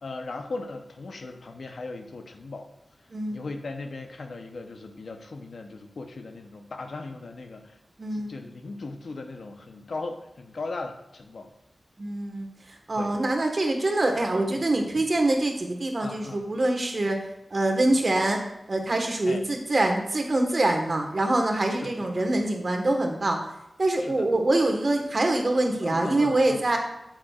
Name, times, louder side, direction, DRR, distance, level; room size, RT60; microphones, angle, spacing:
voice 1, 0.0-2.7 3.3-7.8 8.1-11.5 12.9-13.2 14.5-14.6 15.0-15.1 16.0-16.4 19.3-19.4 21.8-21.9 22.2-22.3 24.0-24.3 25.8-26.6, left 3 dB, 80° left, 5 dB, 0.8 m, -38 dB
voice 2, 8.0-8.3 12.0-12.5 12.9-17.2 17.5-18.4 18.7-23.4 23.8-26.8, right 2 dB, 55° right, 3 dB, 1.4 m, -24 dB
8.8 x 7.6 x 2.4 m, 0.87 s
cardioid pair, 55°, 0 cm